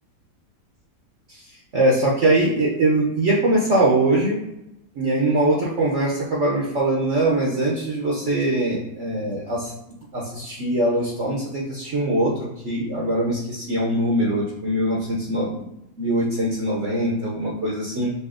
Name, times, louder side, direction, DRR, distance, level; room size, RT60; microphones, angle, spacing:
voice 1, 1.3-4.4 4.9-9.7 10.1-15.7 16.0-18.1, right 1 dB, 55° right, -4 dB, 0.8 m, -22 dB
6.6 x 2.7 x 2.5 m, 0.88 s
omnidirectional pair, 1.8 m